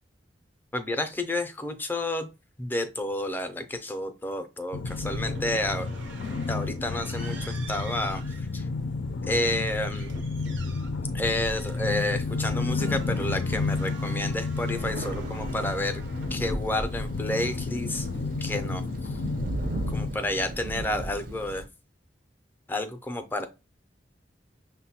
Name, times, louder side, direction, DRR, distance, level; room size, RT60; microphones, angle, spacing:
voice 1, 0.7-2.3 2.6-5.9 6.5-8.7 9.3-10.1 11.1-16.0 16.3-19.2 19.9-21.6 22.7-23.5, left 1 dB, 10° left, 7 dB, 0.4 m, -30 dB
sound 1, 4.7-20.1, left 3 dB, 85° left, 0.4 m, -31 dB
sound 2, 4.9-18.9, right 1 dB, 85° right, 0.7 m, -43 dB
Thunder, 11.7-12.9 13.5-13.6 13.8-21.6, right 1 dB, 50° right, 0.5 m, -37 dB
6.0 x 2.2 x 2.8 m, 0.27 s
head